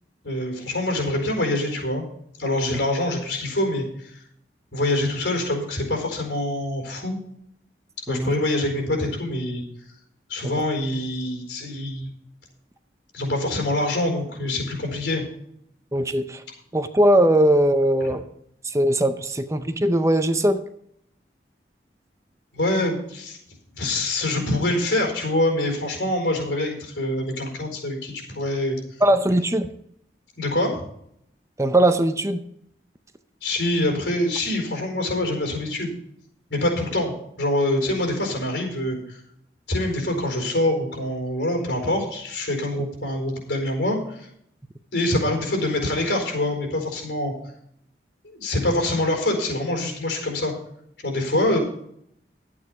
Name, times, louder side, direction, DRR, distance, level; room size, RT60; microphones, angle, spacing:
voice 1, 0.2-2.1 2.4-4.1 4.7-7.2 8.1-9.6 10.3-12.1 13.1-15.2 22.5-23.4 23.8-28.8 30.4-30.8 33.4-35.9 36.5-37.1 37.4-39.2 39.7-44.3 44.9-47.3 48.2-50.5 51.0-51.6, left 1 dB, 85° left, 2 dB, 4.5 m, -25 dB
voice 2, 8.1-8.4 10.4-10.6 15.9-16.4 16.7-18.2 18.6-20.6 29.0-29.7 31.6-32.4 42.8-42.9, right 1 dB, 15° right, 9 dB, 0.6 m, -20 dB
12.0 x 8.6 x 4.9 m, 0.71 s
head